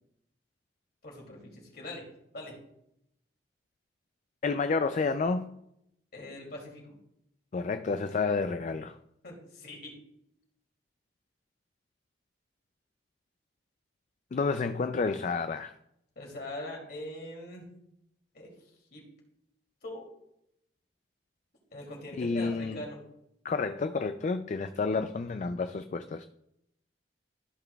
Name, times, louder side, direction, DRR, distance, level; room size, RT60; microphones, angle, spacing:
voice 1, 1.0-2.1 2.3-2.6 6.1-7.0 9.2-10.0 16.2-17.6 18.3-18.5 18.9-19.1 19.8-20.1 21.7-23.0, left 1 dB, 60° left, 2.6 m, -42 dB
voice 2, 4.4-5.6 7.5-9.0 14.3-15.7 22.2-22.8 23.4-26.3, left 4 dB, 40° left, 0.3 m, -30 dB
14.0 x 6.0 x 2.3 m
head